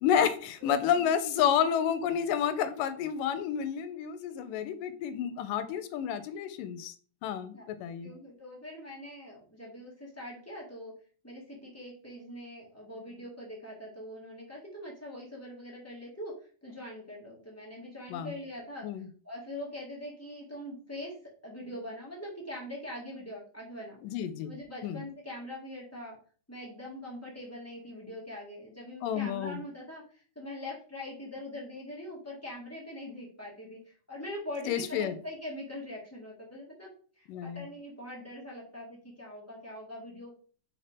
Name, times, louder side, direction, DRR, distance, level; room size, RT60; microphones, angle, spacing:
voice 1, 0.0-6.9 7.2-8.1 18.1-18.3 18.8-19.1 24.0-24.5 24.8-25.0 29.0-29.6 34.7-35.1 37.3-37.6, left 8 dB, 90° left, 11 dB, 2.3 m, -30 dB
voice 2, 0.6-1.4 4.3-4.6 7.5-7.6 8.0-10.9 11.2-16.3 16.6-18.8 19.2-24.0 24.5-26.2 26.5-36.9 37.2-40.3, left 1 dB, 10° left, -4 dB, 0.7 m, -43 dB
4.7 x 4.3 x 5.0 m, 0.43 s
omnidirectional pair, 3.8 m